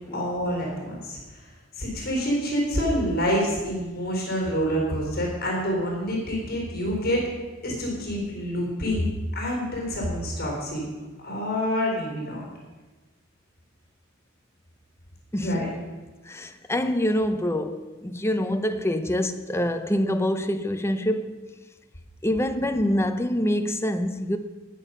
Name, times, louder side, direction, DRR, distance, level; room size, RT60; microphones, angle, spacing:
voice 1, 0.1-1.5 1.8-7.2 7.6-10.8 11.2-12.4 15.3-15.7, equal, 50° left, 4.0 m, -27 dB
voice 2, 15.3-15.7 16.3-21.5 22.2-24.4, equal, 15° left, 0.7 m, -26 dB
18.5 x 7.1 x 5.5 m
head